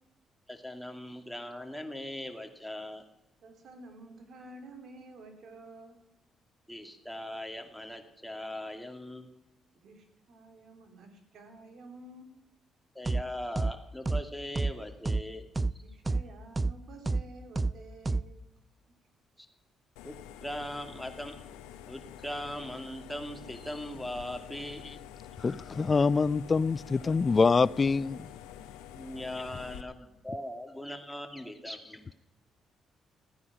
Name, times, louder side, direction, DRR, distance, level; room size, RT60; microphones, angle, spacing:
voice 1, 0.5-3.0 6.7-9.3 12.9-15.5 20.0-20.2 20.4-21.3 21.9-24.8 28.9-32.1, left 1 dB, 5° left, 2.4 m, -40 dB
voice 2, 3.4-6.0 9.7-12.3 15.8-18.4, right 2 dB, 65° right, 3.0 m, -51 dB
sound 1, 13.1-13.2 13.6-13.7 14.1-14.2 14.6-14.7 15.1-15.2 15.6-15.7 16.1-16.2 16.6-16.7 17.1-17.2 17.6-17.7 18.1-18.2, right 3 dB, 25° right, 0.4 m, -28 dB
sound 2, 20.0-29.8, left 10 dB, 85° left, 0.7 m, -47 dB
voice 3, 25.4-28.3 29.3-29.4, left 4 dB, 40° left, 0.4 m, -25 dB
14.5 x 9.7 x 6.2 m
hypercardioid pair, 55°, 0 cm